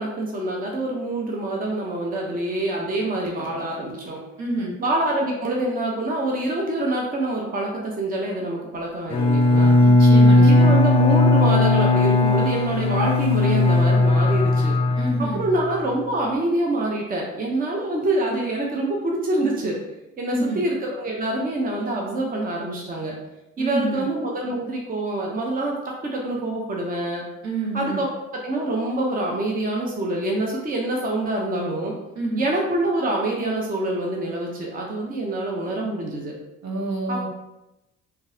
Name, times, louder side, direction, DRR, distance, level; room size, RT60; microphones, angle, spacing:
voice 1, 0.0-4.2 4.8-9.8 10.4-14.8 15.2-19.8 20.2-23.2 23.6-27.2 27.7-31.9 32.3-36.3 37.1-37.3, right 1 dB, 30° right, -1 dB, 0.7 m, -26 dB
voice 2, 4.4-4.7 9.8-10.8 15.0-15.4 20.3-20.6 23.6-24.0 27.4-28.0 32.2-32.4 36.6-37.3, right 2 dB, 60° right, -1 dB, 1.0 m, -27 dB
Bowed string instrument, 9.1-15.7, left 2 dB, 20° left, 0.3 m, -17 dB
3.6 x 2.7 x 2.7 m, 0.94 s
cardioid pair, 90°, 30 cm